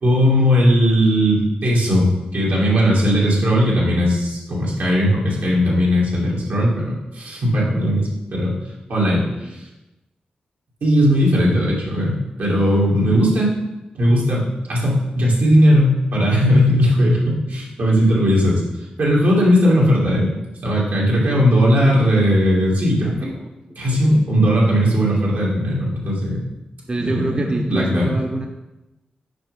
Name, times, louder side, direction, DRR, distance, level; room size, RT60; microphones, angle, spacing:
voice 1, 0.0-8.5 8.9-9.3 10.8-13.5 13.9-18.6 19.0-20.3 20.6-23.3 23.8-26.4 27.0-28.2, equal, 75° right, -5 dB, 2.3 m, -17 dB
voice 2, 9.1-9.5 23.2-23.5 23.8-24.2 26.9-28.5, right 2 dB, 30° right, 3 dB, 0.7 m, -26 dB
6.7 x 5.4 x 3.7 m, 0.99 s
supercardioid pair, 45°, 3 cm